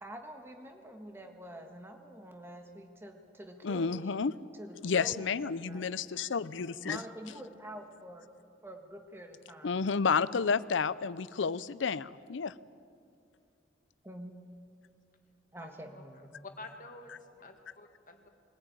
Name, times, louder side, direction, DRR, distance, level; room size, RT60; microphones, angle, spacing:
voice 1, 0.0-4.1 4.5-5.9 6.8-8.3 8.6-9.8 14.0-14.4 15.5-16.4, right 1 dB, 15° right, 4 dB, 1.5 m, -47 dB
voice 2, 3.6-4.3 4.8-7.0 9.6-12.5, left 5 dB, 80° left, 17 dB, 0.6 m, -31 dB
voice 3, 15.6-16.1 16.4-18.3, left 3 dB, 45° left, 4 dB, 1.9 m, -49 dB
22.0 x 15.5 x 9.1 m, 2.4 s
head